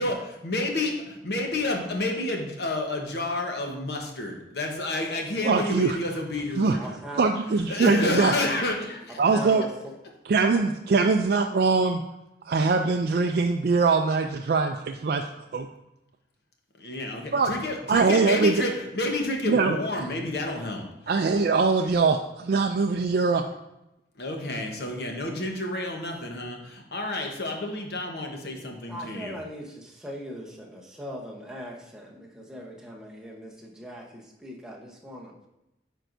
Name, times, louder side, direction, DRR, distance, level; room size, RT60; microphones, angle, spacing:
voice 1, 0.0-7.0 7.5-9.2 16.8-21.4 24.1-29.4, left 2 dB, 60° left, 2 dB, 1.0 m, -30 dB
voice 2, 5.4-6.0 6.6-6.8 7.2-8.3 9.2-9.6 10.3-12.0 12.5-15.2 15.5-15.7 17.3-17.5 17.9-18.5 19.5-19.8 21.1-23.4, right 4 dB, 55° right, 4 dB, 0.3 m, -22 dB
voice 3, 6.8-7.3 9.2-9.9 10.5-10.6 28.9-35.3, equal, 5° right, -2 dB, 0.9 m, -40 dB
9.0 x 4.5 x 2.6 m, 0.90 s
head